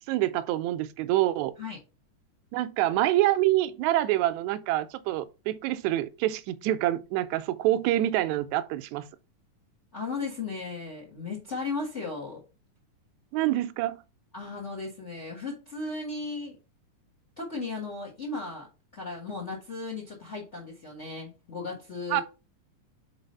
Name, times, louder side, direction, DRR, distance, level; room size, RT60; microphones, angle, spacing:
voice 1, 0.0-1.5 2.5-9.0 13.3-14.0 22.1-22.2, right 14 dB, 80° right, 1.7 m, -26 dB
voice 2, 9.9-12.4 14.3-16.6 17.4-18.7 18.9-22.2, left 3 dB, 75° left, 0.6 m, -36 dB
4.8 x 4.0 x 5.3 m
omnidirectional pair, 3.7 m